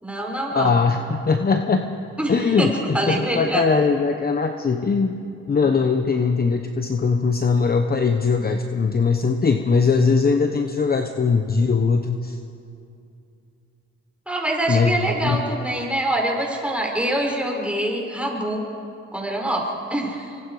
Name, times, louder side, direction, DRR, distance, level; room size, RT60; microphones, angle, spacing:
voice 1, 0.0-0.8 2.2-3.6 14.3-18.6 19.1-20.3, right 1 dB, 5° right, -1 dB, 5.5 m, -25 dB
voice 2, 0.5-1.9 2.3-5.2 5.5-12.4 14.7-15.4, left 4 dB, 30° left, 6 dB, 1.1 m, -20 dB
25.0 x 25.0 x 4.9 m, 2.6 s
cardioid pair, 90°, 30 cm